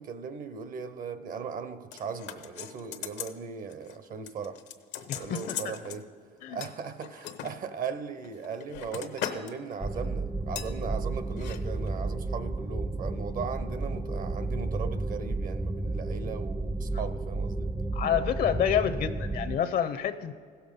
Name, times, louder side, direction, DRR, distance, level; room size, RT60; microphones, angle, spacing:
voice 1, 0.0-4.6 5.2-6.0 6.5-17.7, right 6 dB, 55° right, 11 dB, 0.9 m, -38 dB
sound 1, 1.9-3.4 3.7-4.0 4.3-6.0 6.6-7.5 8.2-9.5 9.8-10.0 10.6-10.7 11.3-11.6 11.9-12.0, left 10 dB, 90° left, 0.9 m, -39 dB
voice 2, 5.1-5.6 6.4-6.6 17.9-20.3, left 9 dB, 60° left, 10 dB, 0.6 m, -28 dB
sound 2, 9.8-19.6, right 2 dB, 5° right, 0.4 m, -32 dB
16.0 x 7.0 x 5.3 m, 2.2 s
cardioid pair, 110°, 17 cm